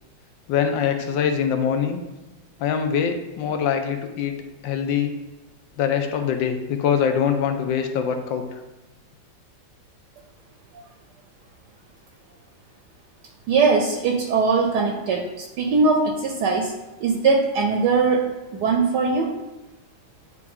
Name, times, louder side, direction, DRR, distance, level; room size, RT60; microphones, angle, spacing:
voice 1, 0.5-2.0 2.6-4.3 4.6-5.1 5.8-8.6, left 7 dB, 80° left, 5 dB, 1.4 m, -23 dB
voice 2, 13.5-16.7 17.0-19.3, right 4 dB, 70° right, 2 dB, 1.1 m, -21 dB
9.5 x 3.2 x 3.5 m, 1.1 s
omnidirectional pair, 2.1 m